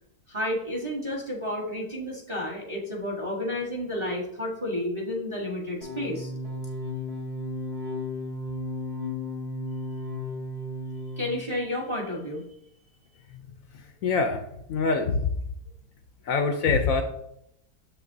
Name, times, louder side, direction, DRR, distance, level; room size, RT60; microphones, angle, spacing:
voice 1, 0.3-6.3 11.2-12.4, left 1 dB, 20° right, -2 dB, 1.0 m, -31 dB
sound 1, 5.8-11.5, left 2 dB, 45° right, 2.7 m, -34 dB
voice 2, 14.0-14.4 14.7-15.3 16.2-17.0, left 4 dB, 70° left, 6 dB, 0.9 m, -24 dB
7.2 x 6.4 x 2.7 m, 0.76 s
omnidirectional pair, 1.7 m